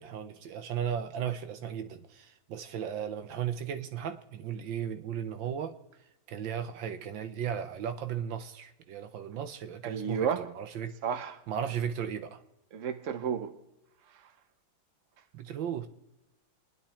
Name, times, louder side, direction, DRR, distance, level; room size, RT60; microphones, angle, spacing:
voice 1, 0.0-5.8 6.3-10.3 10.6-11.0 11.5-12.4 15.3-15.9, right 8 dB, 85° right, 1.7 m, -35 dB
voice 2, 9.8-10.5 11.0-11.4 12.7-13.6 14.1-14.3, right 7 dB, 45° right, 1.3 m, -32 dB
28.5 x 10.5 x 4.4 m
omnidirectional pair, 2.0 m